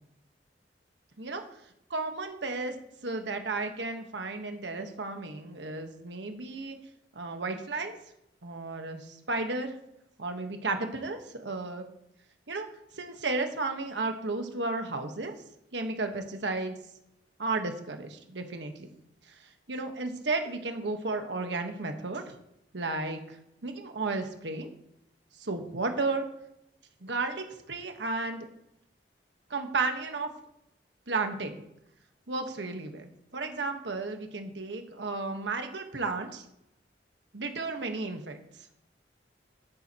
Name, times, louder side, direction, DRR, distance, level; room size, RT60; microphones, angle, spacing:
voice 1, 1.9-2.7 3.0-6.8 7.1-8.0 8.4-9.7 10.2-11.9 12.5-12.7 12.9-15.4 15.7-16.8 17.4-18.9 19.7-22.3 22.7-23.4 23.6-24.7 25.4-26.3 27.0-28.5 29.5-30.3 31.1-31.6 32.3-36.4 37.3-38.4, right 3 dB, 75° right, 5 dB, 1.3 m, -33 dB
10.5 x 10.5 x 3.0 m, 0.81 s
head